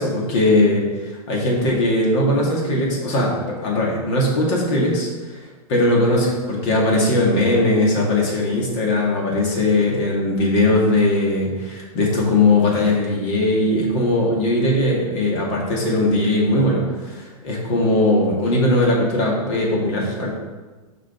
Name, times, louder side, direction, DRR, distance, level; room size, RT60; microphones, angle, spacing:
voice 1, 0.0-5.4 5.7-20.3, left 1 dB, 50° left, -2 dB, 2.1 m, -19 dB
6.1 x 5.2 x 4.4 m, 1.3 s
hypercardioid pair, 115°, 20 cm